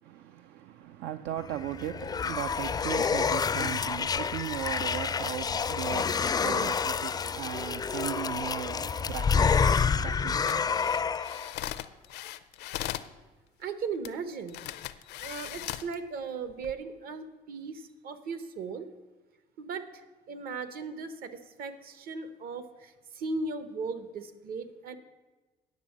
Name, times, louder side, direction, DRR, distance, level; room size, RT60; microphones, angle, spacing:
voice 1, 0.0-10.9, right 12 dB, 85° right, 0.5 m, -38 dB
sound 1, 1.5-11.5, left 6 dB, 25° left, 0.3 m, -28 dB
sound 2, 10.3-13.1 14.0-14.1 14.5-15.9 16.5-16.7, left 13 dB, 80° left, 0.5 m, -38 dB
voice 2, 13.6-14.7 15.2-18.9 19.6-25.0, right 4 dB, 60° right, 1.0 m, -37 dB
9.3 x 7.1 x 7.2 m
cardioid pair, 110°, 17 cm